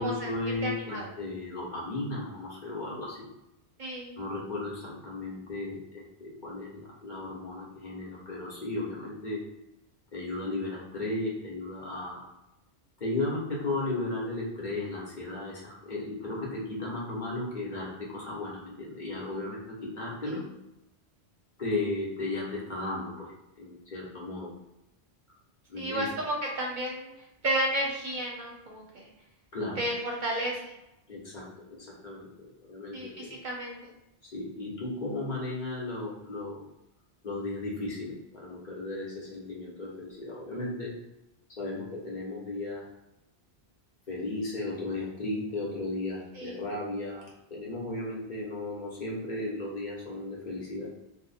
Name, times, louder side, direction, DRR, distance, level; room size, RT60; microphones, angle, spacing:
voice 1, 0.0-3.2 4.2-9.4 10.1-12.2 13.0-20.4 21.6-23.3 23.6-24.5 25.7-26.2 29.5-29.8 31.1-33.4 34.2-36.6 37.2-40.9 41.6-42.9 44.1-50.9, left 2 dB, 50° left, -5 dB, 1.0 m, -35 dB
voice 2, 0.6-1.1 3.8-4.2 20.3-20.4 25.8-27.1 27.4-29.0 29.8-30.6 32.9-33.8 46.4-46.6, right 1 dB, 55° right, -1 dB, 0.7 m, -32 dB
2.8 x 2.1 x 4.0 m, 0.90 s
omnidirectional pair, 1.1 m